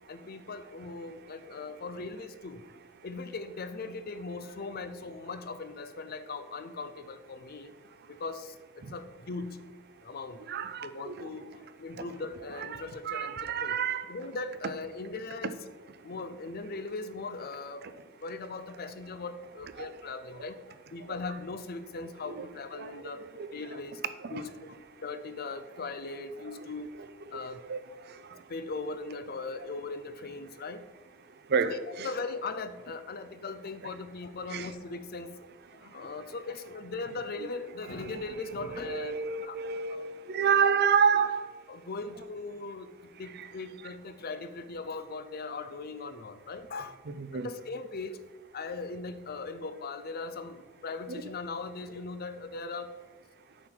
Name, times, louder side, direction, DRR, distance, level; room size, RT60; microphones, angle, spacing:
voice 1, 0.1-2.6 3.0-7.7 8.1-8.5 8.9-9.6 10.0-10.4 10.8-11.5 11.8-13.8 14.1-15.6 16.0-17.8 18.2-20.6 20.9-23.2 23.5-24.0 24.3-26.9 27.3-27.6 28.5-30.8 31.6-31.8 32.0-35.5 35.8-39.2 39.4-39.6 39.9-40.0 41.7-42.9 43.2-47.0 47.3-48.2 48.5-52.9, left 3 dB, 45° left, 11 dB, 0.6 m, -39 dB
voice 2, 10.5-11.3 12.6-14.1 17.8-17.9 19.8-19.9 20.4-20.5 22.3-22.5 22.8-23.6 24.2-24.5 27.0-27.4 27.7-27.8 28.1-28.4 31.5-32.1 34.5-34.7 36.0-36.1 37.4-37.5 38.0-41.5 43.3-43.5 47.1-47.5 51.1-51.2, right 6 dB, 50° right, 11 dB, 0.5 m, -30 dB
8.7 x 5.6 x 4.5 m, 1.4 s
head